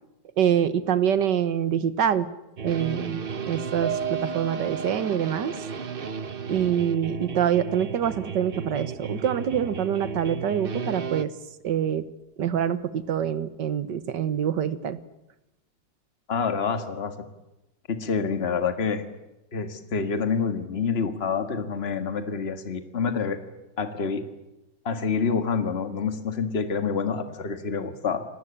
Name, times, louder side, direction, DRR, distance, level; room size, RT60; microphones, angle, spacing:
voice 1, 0.4-2.3 2.6-3.2 3.5-5.5 6.5-11.3 11.6-12.0 12.4-15.0, right 9 dB, 70° right, 14 dB, 1.8 m, -25 dB
sound 1, 2.6-11.2, right 6 dB, 40° right, 1.0 m, -34 dB
Piano, 3.8-8.3 8.7-8.8 9.2-9.3, right 7 dB, 70° left, 6.6 m, -36 dB
voice 2, 16.3-17.1 17.9-19.0 19.5-23.4 23.8-24.2 24.9-28.2, left 5 dB, 35° left, 8 dB, 2.0 m, -27 dB
28.5 x 19.0 x 8.8 m, 0.96 s
omnidirectional pair, 2.0 m